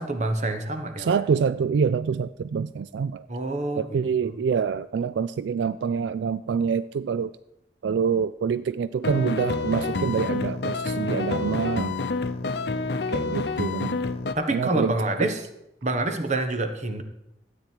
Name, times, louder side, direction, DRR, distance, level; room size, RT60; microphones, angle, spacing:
voice 1, 0.0-1.2 3.3-4.4 14.4-15.4 15.8-17.0, right 2 dB, 40° right, 7 dB, 1.2 m, -27 dB
voice 2, 1.0-3.3 3.8-7.3 7.8-12.0 13.1-14.0 14.5-14.9 15.2-15.3, right 6 dB, 85° right, 15 dB, 0.3 m, -26 dB
sound 1, 9.0-14.3, left 3 dB, 65° left, 0.7 m, -28 dB
13.0 x 9.0 x 4.5 m, 0.88 s
head